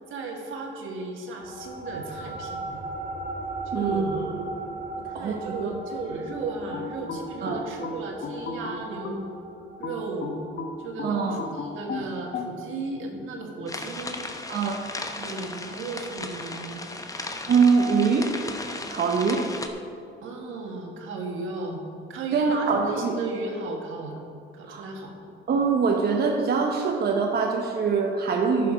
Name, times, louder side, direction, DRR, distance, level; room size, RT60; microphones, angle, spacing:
voice 1, 0.1-2.8 3.7-4.3 5.0-9.3 9.8-10.4 10.8-14.2 15.2-16.8 20.2-21.8 22.1-24.3 24.5-25.1, right 3 dB, 85° right, 1 dB, 1.6 m, -35 dB
sound 1, 1.4-12.2, right 2 dB, 35° right, 1.3 m, -38 dB
voice 2, 3.7-4.5 5.1-5.7 7.4-7.6 11.0-11.4 14.5-14.8 17.2-18.3 18.9-19.5 22.3-23.2 24.7-24.8 25.5-28.7, right 5 dB, 55° right, 2 dB, 0.9 m, -24 dB
sound 2, 6.7-9.3 9.8-12.5, left 4 dB, 55° left, 1.1 m, -34 dB
sound 3, 13.7-19.7, left 2 dB, 15° left, 0.8 m, -36 dB
10.5 x 6.7 x 5.1 m, 2.5 s
cardioid pair, 90°, 20 cm